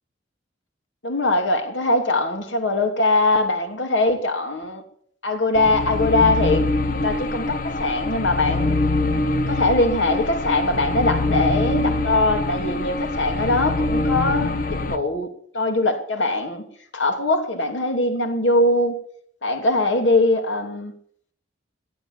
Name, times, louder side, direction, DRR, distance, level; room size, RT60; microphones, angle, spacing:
voice 1, 1.0-4.8 5.2-8.8 9.5-15.3 15.5-16.6 16.9-19.0 19.4-20.9, left 2 dB, 75° left, 3.0 m, -21 dB
sound 1, 5.6-15.0, left 2 dB, 50° left, 1.1 m, -24 dB
18.0 x 11.0 x 7.4 m
head